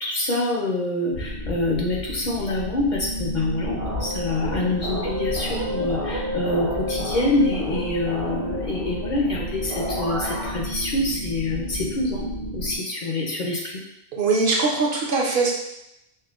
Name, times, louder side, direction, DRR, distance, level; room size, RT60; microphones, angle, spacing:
voice 1, 0.0-12.3 12.5-13.8, left 2 dB, 55° left, -2 dB, 0.6 m, -26 dB
sound 1, 1.1-12.8, equal, 80° left, 1.1 m, -32 dB
sound 2, 3.8-10.5, left 1 dB, 80° right, 1.3 m, -31 dB
voice 2, 14.1-15.5, right 3 dB, 60° right, -2 dB, 0.8 m, -21 dB
5.4 x 2.1 x 2.3 m, 0.84 s
omnidirectional pair, 1.0 m